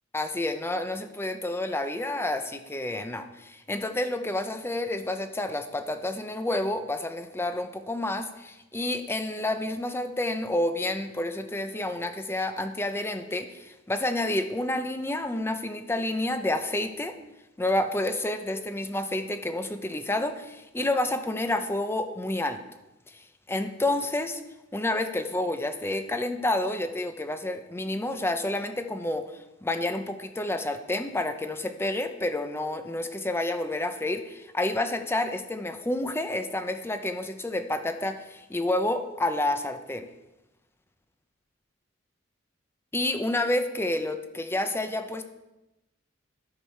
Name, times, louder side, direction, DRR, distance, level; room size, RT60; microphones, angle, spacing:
voice 1, 0.1-17.2 17.6-22.6 23.1-24.4 24.7-29.3 29.6-40.1 42.9-45.2, left 1 dB, 10° left, 8 dB, 0.6 m, -29 dB
11.0 x 6.4 x 4.4 m, 0.99 s
head